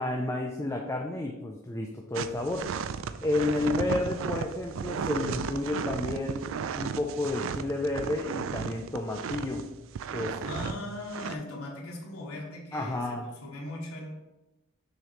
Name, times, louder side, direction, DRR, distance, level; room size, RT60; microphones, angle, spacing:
voice 1, 0.0-2.7 3.2-6.5 6.8-9.6 10.1-10.4 12.7-13.3, left 2 dB, 15° left, 1 dB, 0.4 m, -31 dB
sound 1, 2.1-9.6 9.9-10.7 11.1-11.3, right 6 dB, 65° right, 0.3 m, -34 dB
sound 2, 2.2-11.1, right 2 dB, 80° right, 0.7 m, -50 dB
voice 2, 3.4-3.8 10.4-14.1, left 1 dB, 85° left, -1 dB, 1.4 m, -39 dB
6.2 x 3.1 x 5.1 m, 1.0 s
head